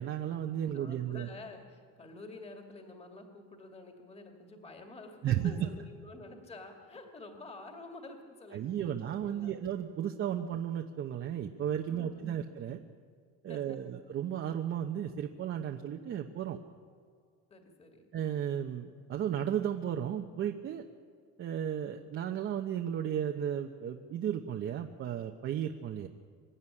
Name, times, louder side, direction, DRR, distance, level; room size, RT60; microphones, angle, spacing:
voice 1, 0.0-1.3 5.2-5.7 8.5-12.8 13.4-16.6 18.1-20.8 21.4-26.1, right 9 dB, 40° right, 3 dB, 0.9 m, -34 dB
voice 2, 0.6-9.5 11.9-12.4 13.5-13.8 17.5-18.1, left 2 dB, 20° left, 4 dB, 2.4 m, -49 dB
25.0 x 12.5 x 9.9 m, 2.1 s
cardioid pair, 165°, 31 cm